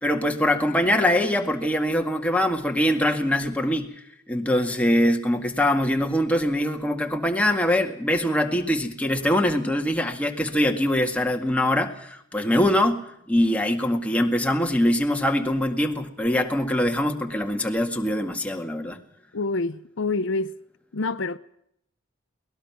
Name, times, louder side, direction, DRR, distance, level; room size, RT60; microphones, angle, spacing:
voice 1, 0.0-3.9 4.3-13.0 13.3-19.0, left 1 dB, 5° left, 2.0 m, -23 dB
voice 2, 19.3-20.5 20.9-21.4, left 3 dB, 60° left, 0.7 m, -27 dB
23.0 x 19.5 x 6.0 m
head